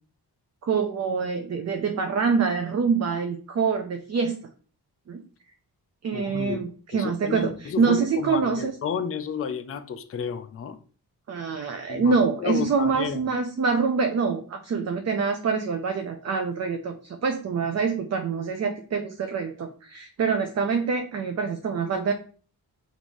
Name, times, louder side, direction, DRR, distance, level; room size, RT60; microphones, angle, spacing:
voice 1, 0.6-4.4 5.1-5.2 6.0-8.8 11.3-22.1, right 5 dB, 40° right, 0.5 m, -25 dB
voice 2, 6.1-6.6 7.0-10.8 11.9-12.1 12.4-13.2, left 7 dB, 35° left, 0.4 m, -31 dB
5.3 x 2.6 x 3.0 m
wide cardioid pair, 100°, 39 cm